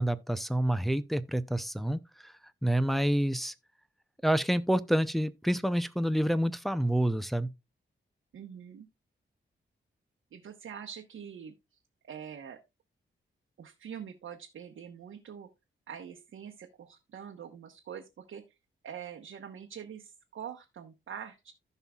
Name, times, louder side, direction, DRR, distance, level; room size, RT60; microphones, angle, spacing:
voice 1, 0.0-2.3 2.6-3.5 4.2-7.5, right 1 dB, ahead, 0.6 m, -28 dB
voice 2, 8.3-8.9 10.3-11.5 12.0-12.6 13.6-15.5 15.9-18.4 18.8-21.5, right 8 dB, 85° right, 1.1 m, -44 dB
15.0 x 5.6 x 2.4 m
wide cardioid pair, 95°, 20 cm